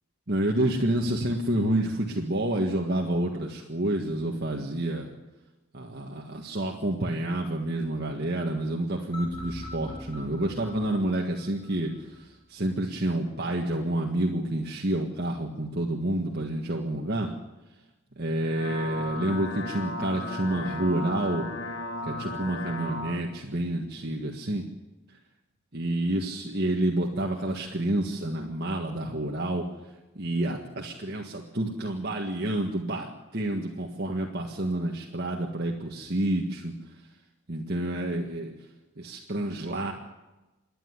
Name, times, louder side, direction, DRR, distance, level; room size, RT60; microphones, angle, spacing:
voice 1, 0.3-5.1 5.7-17.3 18.2-21.4 22.0-24.7 25.7-29.6 30.2-36.7 37.5-38.5 39.0-39.9, right 1 dB, 45° right, 0 dB, 1.7 m, -29 dB
sound 1, 9.1-12.2, left 1 dB, 25° left, 7.4 m, -42 dB
sound 2, 18.3-23.2, left 1 dB, 55° left, 2.2 m, -35 dB
27.0 x 10.5 x 10.0 m, 1.1 s
head